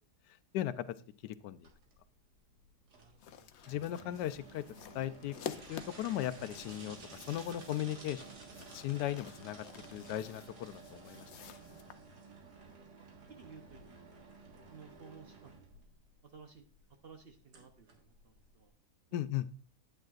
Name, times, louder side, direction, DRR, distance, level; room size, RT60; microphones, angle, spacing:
voice 1, 1.2-1.7 3.7-4.6 4.9-5.4 5.7-8.2 8.7-9.6 9.9-11.6 19.1-19.4, left 12 dB, 90° left, 13 dB, 1.2 m, -37 dB
sound 1, 1.6-18.7, right 4 dB, 85° right, 2.2 m, -53 dB
voice 2, 2.9-3.5 12.9-14.0 14.6-15.6 16.2-16.6 17.0-18.7 19.1-19.2, right 5 dB, 50° right, 5 dB, 0.8 m, -56 dB
sound 2, 3.2-11.9, left 8 dB, 70° left, 0.6 m, -50 dB
9.5 x 9.0 x 2.4 m, 0.41 s
omnidirectional pair, 1.7 m